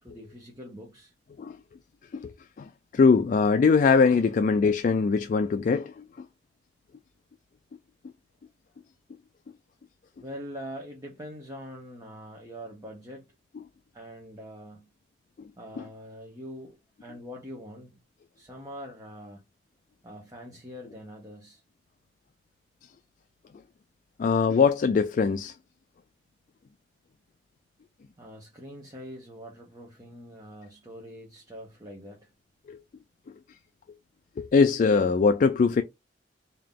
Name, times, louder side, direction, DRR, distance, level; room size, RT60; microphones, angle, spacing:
voice 1, 0.0-1.1 10.2-13.3 13.9-14.9 15.6-18.0 18.4-19.4 20.0-21.6 28.2-32.3, equal, 20° right, 0.8 m, -43 dB
voice 2, 2.6-6.0 24.2-25.5 32.7-32.8 34.4-35.8, left 5 dB, 45° left, 0.3 m, -22 dB
3.6 x 2.8 x 3.6 m
head